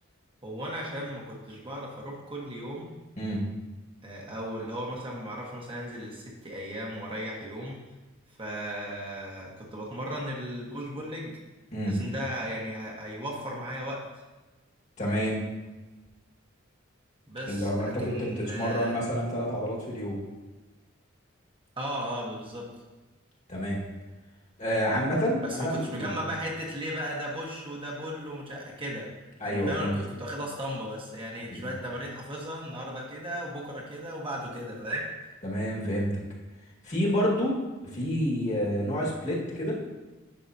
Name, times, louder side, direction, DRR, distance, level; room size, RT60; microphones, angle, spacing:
voice 1, 0.4-2.9 4.0-7.8 8.4-11.4 11.9-14.1 17.3-18.9 21.8-22.7 25.4-29.1 29.4-35.1, equal, 25° right, -3 dB, 1.3 m, -36 dB
voice 2, 15.0-15.4 17.5-20.2 23.5-23.8 24.6-26.3 29.4-30.0 31.5-31.6 35.4-36.2 36.8-39.8, equal, 35° left, -4 dB, 1.8 m, -29 dB
10.0 x 5.9 x 2.8 m, 1.2 s
head